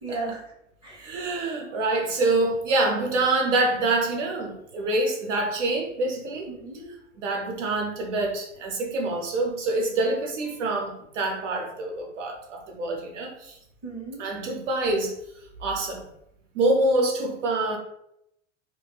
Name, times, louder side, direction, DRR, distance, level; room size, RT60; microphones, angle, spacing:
voice 1, 0.0-0.4 0.8-1.1 6.5-6.9 13.8-14.2, right 3 dB, 15° right, -4 dB, 1.1 m, -35 dB
voice 2, 1.0-6.5 7.2-13.6 14.2-15.1 15.6-16.1 16.5-17.8, right 2 dB, 75° right, 2 dB, 0.6 m, -26 dB
2.7 x 2.6 x 2.2 m, 0.79 s
hypercardioid pair, 95°, 37 cm